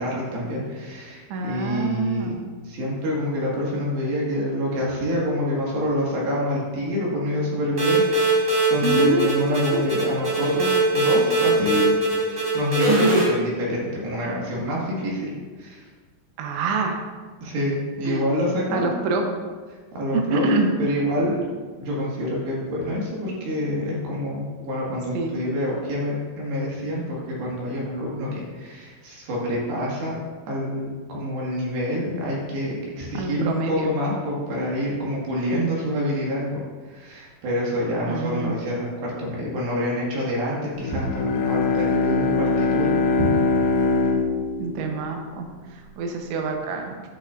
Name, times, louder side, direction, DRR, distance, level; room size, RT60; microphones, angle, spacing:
voice 1, 0.0-2.3 2.7-8.3 8.7-12.0 12.3-15.3 15.6-15.8 17.4-18.9 19.9-20.5 20.8-21.5 21.8-30.1 30.5-36.6 36.9-42.9 43.2-43.3, left 1 dB, 65° right, -4 dB, 3.1 m, -27 dB
voice 2, 1.3-2.4 8.8-9.3 9.7-9.9 12.9-13.2 16.4-17.0 18.1-18.3 18.7-19.3 20.1-20.7 25.1-25.3 33.1-33.9 35.5-35.9 38.0-38.5 44.6-47.0, right 3 dB, 85° right, 3 dB, 3.2 m, -26 dB
sound 1, 7.8-13.2, right 2 dB, 35° right, 1.6 m, -21 dB
Bowed string instrument, 40.8-45.6, left 4 dB, 80° left, 3.0 m, -23 dB
13.5 x 5.7 x 2.4 m, 1.5 s
omnidirectional pair, 5.3 m